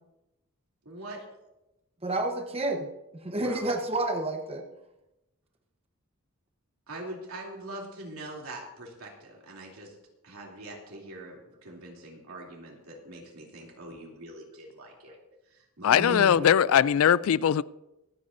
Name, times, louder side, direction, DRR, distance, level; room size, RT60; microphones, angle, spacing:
voice 1, 0.8-1.2 3.3-3.6 6.9-9.9 10.2-15.1 15.5-16.6, right 1 dB, 80° right, 3.0 m, -43 dB
voice 2, 2.0-2.9 3.2-4.6 16.0-16.5, right 2 dB, 25° right, 1.0 m, -30 dB
voice 3, 15.8-17.6, left 9 dB, 70° left, 0.3 m, -21 dB
24.5 x 8.4 x 2.6 m
head